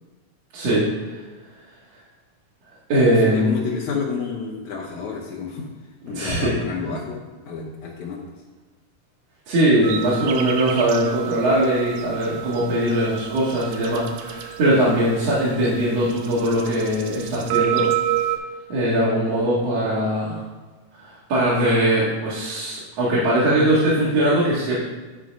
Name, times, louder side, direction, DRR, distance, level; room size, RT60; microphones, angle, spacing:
voice 1, 0.5-1.2 2.9-3.5 6.1-6.5 9.5-17.9 18.7-20.4 21.0-24.8, right 1 dB, 55° right, -9 dB, 2.6 m, -21 dB
voice 2, 3.2-5.7 6.0-8.3, left 5 dB, 70° left, -4 dB, 2.2 m, -30 dB
sound 1, 9.8-18.4, right 11 dB, 85° right, 2.3 m, -29 dB
11.0 x 4.0 x 5.2 m, 1.3 s
omnidirectional pair, 3.7 m